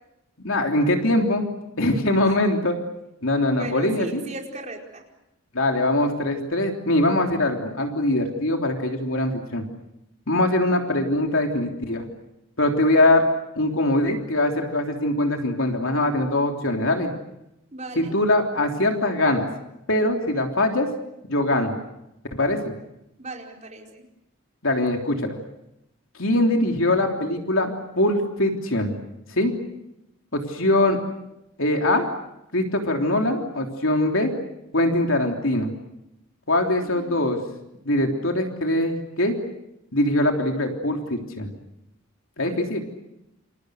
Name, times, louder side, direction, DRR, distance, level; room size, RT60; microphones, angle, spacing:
voice 1, 0.4-1.5 1.8-2.8 3.2-4.2 5.5-9.6 10.3-12.0 12.6-13.2 13.5-17.1 17.9-19.5 19.9-20.9 21.3-21.7 22.3-22.7 24.6-25.4 26.2-29.0 29.3-29.5 30.3-31.0 31.6-32.1 32.5-34.3 34.7-35.7 36.5-37.4 37.8-39.3 39.9-41.5 42.4-42.8, left 1 dB, 65° left, 3 dB, 3.4 m, -22 dB
voice 2, 3.6-5.0 17.7-18.2 23.2-24.0 36.8-37.5 42.4-42.6, right 1 dB, 30° right, 0 dB, 4.8 m, -37 dB
29.0 x 28.0 x 6.5 m, 0.85 s
head